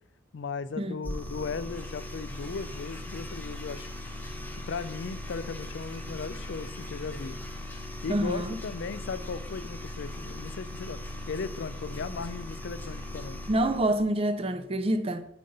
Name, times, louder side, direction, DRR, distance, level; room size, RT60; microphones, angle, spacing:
voice 1, 0.3-3.9 4.5-7.4 8.0-11.0 11.3-13.4, left 5 dB, 60° left, 0.4 m, -37 dB
sound 1, 1.0-14.0, left 1 dB, 10° left, 0.7 m, -39 dB
voice 2, 8.1-8.6 13.5-15.3, right 1 dB, 30° right, 0.5 m, -27 dB
7.7 x 5.3 x 3.9 m
head